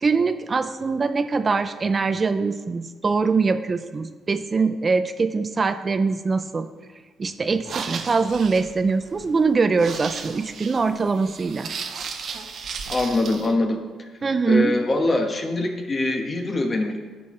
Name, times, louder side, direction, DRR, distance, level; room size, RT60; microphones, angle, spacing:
voice 1, 0.0-6.7 7.2-11.7 14.2-14.7, right 4 dB, 35° right, 9 dB, 0.4 m, -23 dB
sound 1, 7.5-13.5, right 5 dB, 60° right, 0.8 m, -35 dB
voice 2, 12.9-13.8 14.4-17.0, left 2 dB, 35° left, 4 dB, 1.3 m, -23 dB
14.0 x 5.4 x 3.2 m, 1.3 s
cardioid pair, 90°, 0 cm